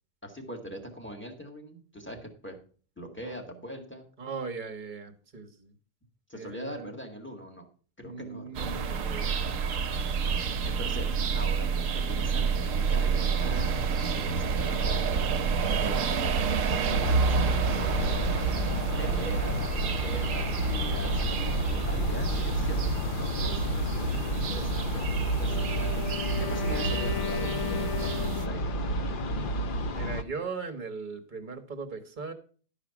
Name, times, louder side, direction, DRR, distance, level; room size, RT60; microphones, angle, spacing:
voice 1, 0.2-2.6 3.0-4.0 6.3-7.7 8.0-8.5 10.2-11.1 11.3-13.7 14.3-15.1 15.6-18.5 19.0-22.8 23.2-26.1 26.5-28.9, equal, 10° left, 2 dB, 1.9 m, -42 dB
voice 2, 4.2-5.7 6.3-6.9 8.0-9.7 10.4-10.6 29.8-32.3, right 4 dB, 35° right, 6 dB, 1.2 m, -39 dB
sound 1, 8.5-28.5, right 5 dB, 70° right, 1.2 m, -29 dB
sound 2, 16.8-30.2, equal, 50° left, 0.7 m, -31 dB
Wind instrument woodwind instrument, 25.4-28.9, left 7 dB, 80° left, 1.1 m, -37 dB
12.0 x 4.9 x 5.9 m, 0.41 s
omnidirectional pair, 1.5 m